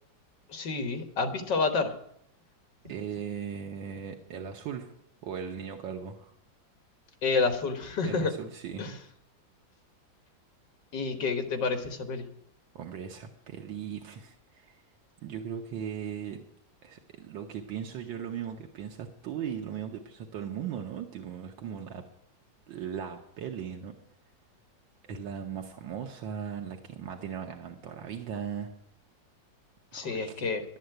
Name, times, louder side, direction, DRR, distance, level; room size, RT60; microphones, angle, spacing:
voice 1, 0.5-1.9 7.2-8.3 8.8-8.9 10.9-12.3 29.9-30.6, left 4 dB, 70° left, 6 dB, 2.0 m, -29 dB
voice 2, 2.9-4.9 5.2-6.3 8.0-8.9 12.7-14.8 15.2-16.4 16.8-22.0 22.7-23.9 25.0-28.7 29.9-30.5, right 8 dB, 80° right, 3 dB, 1.7 m, -38 dB
11.5 x 8.5 x 7.9 m, 0.72 s
omnidirectional pair, 2.0 m